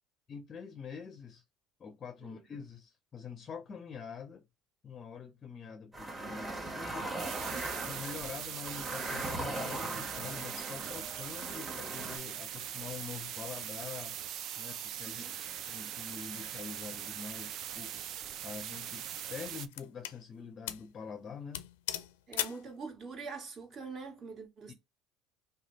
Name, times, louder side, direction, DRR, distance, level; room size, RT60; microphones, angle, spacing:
voice 1, 0.3-1.4 1.8-4.4 4.8-7.1 7.5-15.3 15.7-17.9 18.4-21.7 24.7-24.8, left 6 dB, 35° left, 0.5 m, -45 dB
sound 1, 5.9-12.2, right 2 dB, 15° right, 1.3 m, -39 dB
sound 2, 7.2-19.7, right 10 dB, 55° right, 0.4 m, -41 dB
sound 3, 18.0-18.3 19.0-20.2 20.7-20.9 21.2-21.3 21.5-22.7, left 12 dB, 90° left, 0.4 m, -38 dB
voice 2, 22.3-24.7, right 4 dB, 40° right, 1.7 m, -44 dB
3.2 x 2.2 x 3.8 m
supercardioid pair, 100°, 0 cm